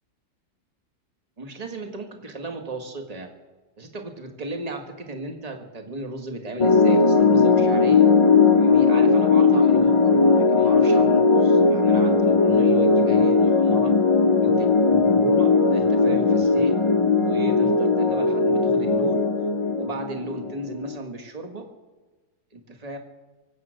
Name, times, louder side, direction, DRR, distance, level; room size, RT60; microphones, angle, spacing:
voice 1, 1.4-3.3 3.8-8.1 8.6-13.9 14.3-16.7 17.1-19.2 19.8-21.6 22.5-23.0, right 2 dB, 25° right, 5 dB, 1.6 m, -35 dB
sound 1, 6.6-21.0, left 4 dB, 35° left, 0.5 m, -18 dB
24.0 x 8.7 x 6.4 m, 1.2 s
omnidirectional pair, 1.8 m